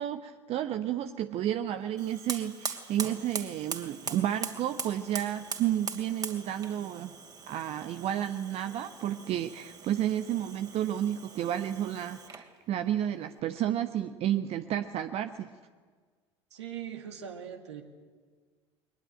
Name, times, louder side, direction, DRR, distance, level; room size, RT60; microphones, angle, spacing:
voice 1, 0.0-7.1 7.5-15.5, right 11 dB, 40° right, 9 dB, 1.0 m, -31 dB
Fire, 1.9-12.5, right 5 dB, 25° right, 2.8 m, -41 dB
voice 2, 16.5-17.8, right 9 dB, 70° right, 4 dB, 2.0 m, -40 dB
22.5 x 20.0 x 9.1 m, 1.5 s
figure-of-eight pair, 70°, 15 cm